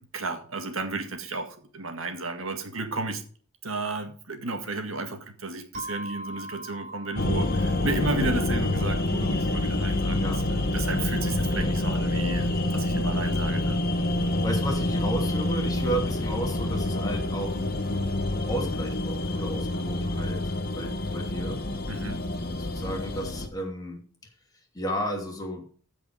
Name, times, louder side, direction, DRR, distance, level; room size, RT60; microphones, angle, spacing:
voice 1, 0.0-3.2 3.6-13.8 21.9-22.3, right 2 dB, 75° right, 1.8 m, -33 dB
sound 1, 5.7-10.1, equal, 40° right, 3.6 m, -43 dB
sound 2, 7.2-23.5, left 1 dB, 45° left, 1.3 m, -27 dB
voice 2, 14.4-17.6 18.5-21.6 22.6-24.0 24.7-25.6, right 1 dB, 20° left, 2.8 m, -33 dB
15.0 x 5.2 x 5.1 m
head